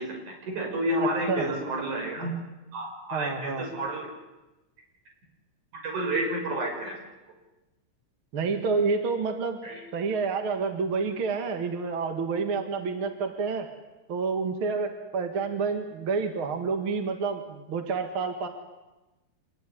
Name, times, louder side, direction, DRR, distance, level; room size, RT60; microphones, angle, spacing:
voice 1, 0.0-2.4 2.7-4.1 5.8-7.0 9.6-9.8, right 1 dB, 85° right, 2 dB, 7.1 m, -30 dB
voice 2, 1.0-1.5 3.1-3.7 8.3-9.6 9.9-13.7 14.1-18.5, right 4 dB, 45° right, 5 dB, 2.7 m, -29 dB
26.5 x 19.0 x 10.0 m, 1.1 s
omnidirectional pair, 3.4 m